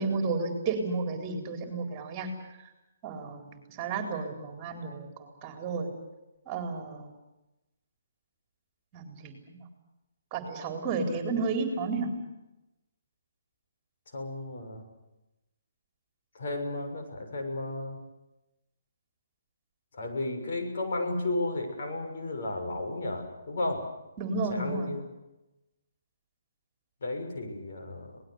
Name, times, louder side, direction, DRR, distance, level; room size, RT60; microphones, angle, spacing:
voice 1, 0.0-2.3 3.0-5.9 6.5-7.1 8.9-9.6 10.3-12.1 24.2-24.9, right 4 dB, 25° right, 5 dB, 4.2 m, -32 dB
voice 2, 14.1-14.8 16.3-18.0 19.9-23.8 24.5-25.0 27.0-28.2, left 2 dB, 60° left, 3 dB, 6.7 m, -33 dB
25.5 x 19.5 x 8.2 m, 0.96 s
hypercardioid pair, 145°, 0 cm